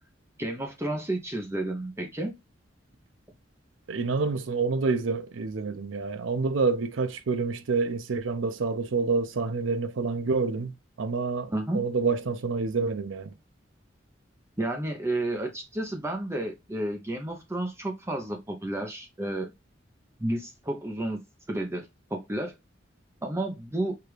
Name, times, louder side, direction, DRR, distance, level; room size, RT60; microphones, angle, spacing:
voice 1, 0.4-2.4 11.5-11.8 14.6-19.5 20.2-21.2 21.5-22.5 23.2-23.9, right 1 dB, 15° right, 0.6 m, -31 dB
voice 2, 3.9-13.3, right 4 dB, 85° right, 0.5 m, -28 dB
4.6 x 2.4 x 3.2 m
head